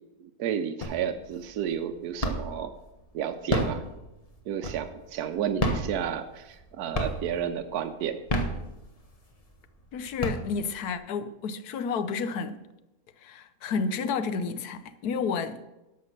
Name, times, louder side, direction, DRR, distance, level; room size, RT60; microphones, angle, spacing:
voice 1, 0.4-2.7 3.1-3.9 4.5-8.2, right 9 dB, 75° right, 7 dB, 1.1 m, -31 dB
sound 1, 0.8-1.3 1.7-2.7 3.3-5.1 5.5-6.6 6.9-7.5 8.1-9.2 9.7-9.8 10.0-10.9, equal, 25° left, 1.0 m, -29 dB
voice 2, 9.9-12.6 13.2-15.6, left 5 dB, 75° left, 11 dB, 1.2 m, -31 dB
12.5 x 5.8 x 6.5 m, 0.99 s
omnidirectional pair, 1.7 m